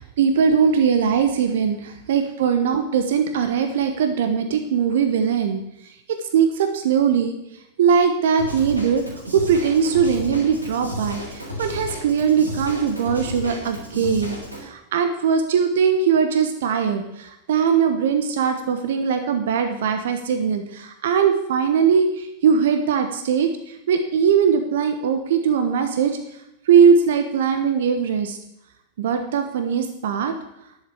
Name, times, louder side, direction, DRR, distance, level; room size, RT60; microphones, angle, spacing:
voice 1, 0.0-5.6 6.3-7.3 7.8-9.0 9.3-26.2 26.7-28.4 29.0-30.4, right 7 dB, 60° right, 7 dB, 1.1 m, -20 dB
Drum kit / Drum, 8.4-14.6, left 1 dB, 85° right, 4.0 m, -33 dB
11.0 x 7.5 x 8.5 m, 0.85 s
figure-of-eight pair, 90°, 0 cm